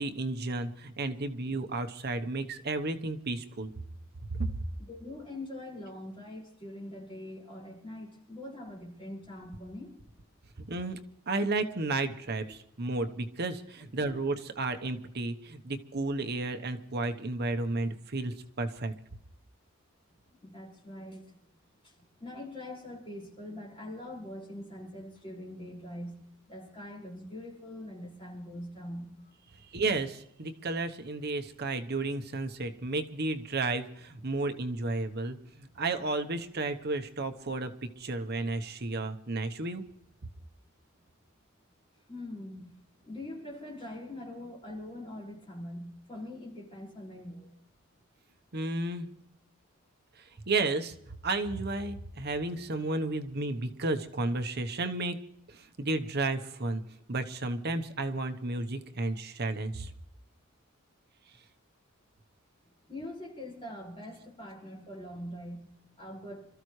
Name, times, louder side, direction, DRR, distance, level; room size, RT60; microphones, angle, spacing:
voice 1, 0.0-3.7 4.3-4.5 10.6-11.0 11.3-18.9 29.7-37.7 38.0-39.8 48.5-49.1 50.5-50.9 51.2-55.2 55.5-56.8 57.1-59.9, right 2 dB, 50° right, 7 dB, 1.0 m, -32 dB
voice 2, 4.9-9.9 14.0-14.2 20.4-21.4 21.8-21.9 22.2-26.2 26.5-29.1 42.1-42.7 43.0-47.5 62.9-66.5, left 1 dB, 25° left, -3 dB, 5.4 m, -43 dB
27.0 x 14.0 x 3.2 m, 0.74 s
head